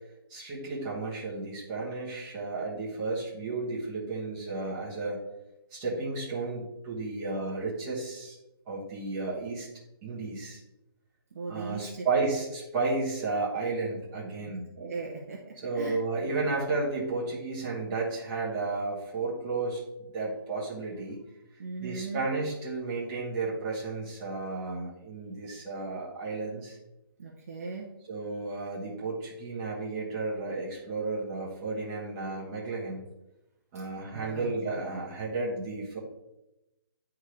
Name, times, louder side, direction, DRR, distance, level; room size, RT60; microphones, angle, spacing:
voice 1, 0.3-5.2 5.7-8.4 8.7-9.7 10.0-10.6 11.5-14.7 15.6-21.2 21.8-26.8 28.1-33.0 33.7-36.0, right 3 dB, 10° right, -7 dB, 1.1 m, -33 dB
voice 2, 11.3-12.3 14.5-16.0 16.3-16.7 21.6-22.3 27.2-28.0 34.1-34.5, right 4 dB, 35° right, -2 dB, 0.8 m, -39 dB
9.9 x 3.6 x 3.1 m, 0.92 s
hypercardioid pair, 175°, 13 cm